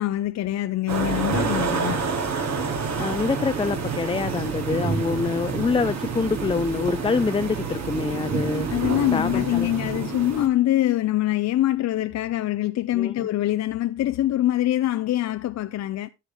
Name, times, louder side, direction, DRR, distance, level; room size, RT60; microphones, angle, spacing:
voice 1, 0.0-2.1 8.7-16.1, left 14 dB, 60° left, 0.6 m, -24 dB
sound 1, 0.9-10.5, right 5 dB, 60° right, 3.2 m, -28 dB
voice 2, 3.0-8.7 9.1-9.7 12.9-13.3, left 4 dB, 20° left, 0.5 m, -26 dB
11.0 x 8.1 x 3.5 m
cardioid pair, 90°, 30 cm